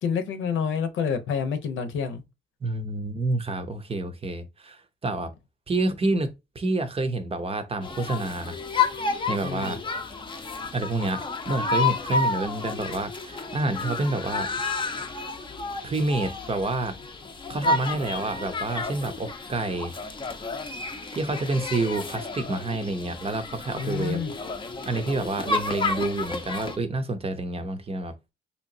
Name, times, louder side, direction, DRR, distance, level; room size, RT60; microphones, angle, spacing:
voice 1, 0.0-2.2 9.4-9.8 23.8-24.3, left 6 dB, 75° left, 0.8 m, -28 dB
voice 2, 2.6-5.3 5.7-8.6 9.3-9.8 10.7-14.5 15.8-16.9 17.5-19.9 21.1-24.2 24.9-28.1, right 2 dB, 30° right, 0.7 m, -28 dB
sound 1, 7.8-26.8, left 3 dB, 25° left, 0.6 m, -31 dB
3.5 x 2.9 x 2.6 m
cardioid pair, 90°, 20 cm